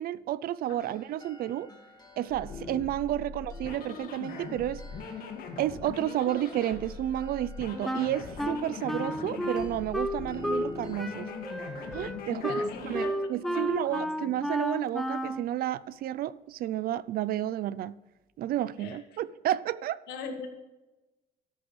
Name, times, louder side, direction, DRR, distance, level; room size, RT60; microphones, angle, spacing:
voice 1, 0.0-1.7 2.2-4.8 5.6-11.3 11.9-12.5 12.8-13.0 13.3-18.0 18.4-20.0, right 12 dB, 65° right, 0.5 m, -31 dB
sound 1, 0.6-13.8, left 2 dB, 25° left, 2.1 m, -55 dB
sound 2, 2.3-13.1, left 4 dB, 60° left, 2.1 m, -41 dB
Wind instrument woodwind instrument, 7.8-10.7 11.0-15.5, equal, ahead, 0.6 m, -32 dB
voice 2, 12.3-14.5 18.8-19.0 20.1-20.5, left 5 dB, 85° left, 2.0 m, -41 dB
13.0 x 11.0 x 3.2 m
cardioid pair, 110°, 17 cm